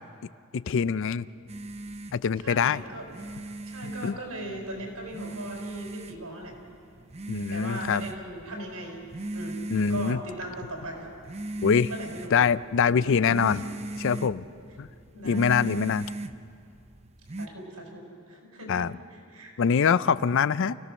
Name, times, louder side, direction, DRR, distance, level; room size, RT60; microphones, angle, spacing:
voice 1, 0.5-1.3 2.1-2.8 3.8-4.2 7.3-8.0 9.7-10.2 11.6-11.9 12.3-13.6 14.0-14.4 14.8-14.9 15.2-16.1 18.7-18.9 19.6-20.8, left 6 dB, 60° left, 18 dB, 0.4 m, -24 dB
sound 1, 1.5-17.5, right 2 dB, 30° right, 0.7 m, -39 dB
voice 2, 2.3-3.1 3.6-6.6 7.5-11.1 11.9-12.4 12.8-13.5 14.1-14.4 15.1-15.6 17.3-19.8, right 1 dB, 85° right, 1 dB, 5.0 m, -39 dB
29.0 x 17.0 x 6.4 m, 2.3 s
head